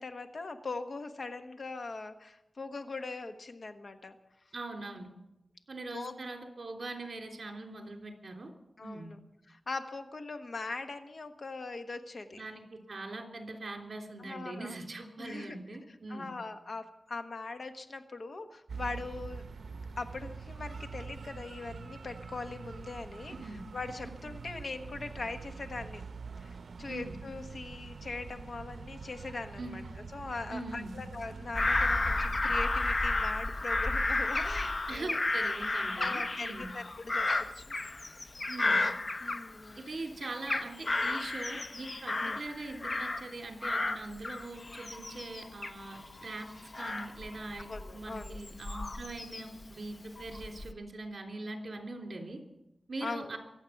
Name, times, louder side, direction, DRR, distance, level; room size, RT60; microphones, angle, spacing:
voice 1, 0.0-4.2 5.9-6.1 8.8-9.2 9.5-12.4 14.2-14.8 15.2-15.6 16.1-19.4 20.0-23.3 23.7-26.0 26.4-35.2 35.9-37.3 37.5-37.8 38.2-38.4 39.2-39.8 42.2-42.4 47.7-48.4 53.0-53.2, left 3 dB, 60° left, 7 dB, 1.2 m, -41 dB
voice 2, 4.5-5.1 5.7-8.5 8.8-9.1 12.3-16.3 23.4-23.6 26.9-27.1 29.6-29.8 30.5-30.9 34.9-36.7 38.5-38.8 39.8-46.5 46.8-47.7 47.9-52.4 52.9-53.4, right 2 dB, 55° right, 2 dB, 3.4 m, -42 dB
sound 1, 18.7-32.5, right 5 dB, 85° right, 0.7 m, -45 dB
Bird vocalization bird call bird song / Crow, 31.5-39.9 40.2-43.3 43.6-49.6 50.2-50.7, left 2 dB, 40° left, 0.8 m, -32 dB
23.5 x 8.6 x 5.9 m, 0.88 s
wide cardioid pair, 85°, 0 cm